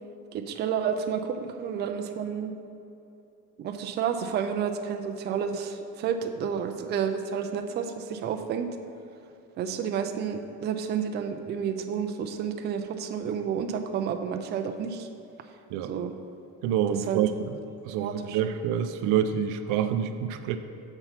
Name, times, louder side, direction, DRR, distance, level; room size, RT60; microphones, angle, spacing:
voice 1, 0.3-2.5 3.6-8.7 9.6-15.1 15.9-16.1 17.1-17.2 18.0-18.4, right 7 dB, 35° right, 5 dB, 0.4 m, -30 dB
voice 2, 16.6-17.3 17.8-20.6, right 9 dB, 90° right, 9 dB, 0.5 m, -27 dB
6.9 x 4.5 x 5.7 m, 2.8 s
cardioid pair, 160°, 31 cm